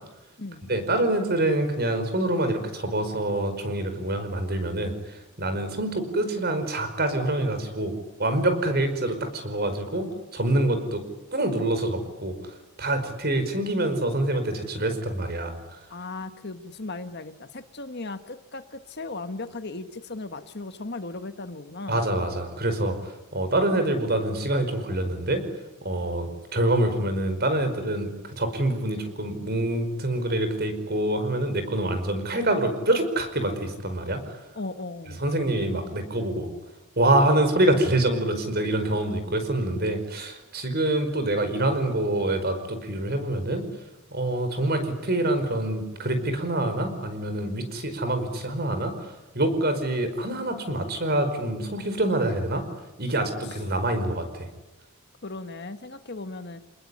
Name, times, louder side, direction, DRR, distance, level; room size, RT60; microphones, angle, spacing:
voice 1, 0.7-7.9 8.2-10.1 10.3-11.0 11.3-12.3 12.8-15.5 21.9-22.9 23.3-25.4 25.8-28.1 28.4-34.4 35.2-36.5 37.0-43.6 44.1-49.1 49.3-52.6 53.0-54.5, right 1 dB, 45° right, 9 dB, 5.1 m, -26 dB
voice 2, 15.9-22.0 34.5-35.2 53.5-53.6 55.2-56.6, left 3 dB, 50° left, 9 dB, 1.6 m, -37 dB
28.0 x 20.5 x 10.0 m, 1.0 s
head